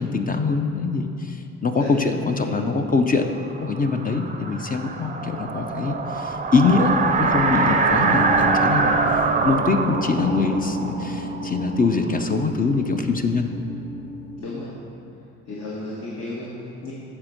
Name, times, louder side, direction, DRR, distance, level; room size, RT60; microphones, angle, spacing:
voice 1, 0.0-3.3 3.6-9.0 9.4-13.5, left 4 dB, 30° left, 5 dB, 0.6 m, -23 dB
voice 2, 1.8-2.6 14.4-14.8 15.5-16.9, left 2 dB, 55° left, -5 dB, 1.5 m, -34 dB
sound 1, 3.4-12.2, right 4 dB, 25° right, 0.6 m, -24 dB
sound 2, 7.3-14.4, equal, 90° left, 0.9 m, -32 dB
8.7 x 4.4 x 6.4 m, 2.7 s
cardioid pair, 90°, 30 cm